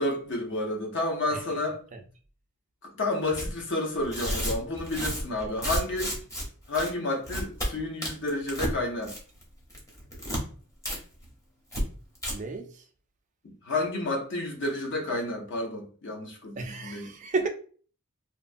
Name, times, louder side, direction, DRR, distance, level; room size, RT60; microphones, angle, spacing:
voice 1, 0.0-1.8 3.0-6.1 6.7-9.2 13.4-17.1, left 2 dB, 55° left, 0.7 m, -30 dB
Tearing, 3.3-3.5 4.0-6.4 6.7-6.9 7.2-7.7 8.0-8.7 9.0-9.4 9.7-10.4 10.8-11.0 11.2-11.3 11.7-11.8 12.1-12.3, equal, 15° left, 0.7 m, -31 dB
voice 2, 12.3-12.7 16.6-17.5, right 3 dB, 35° right, 0.4 m, -32 dB
2.9 x 2.1 x 2.5 m
head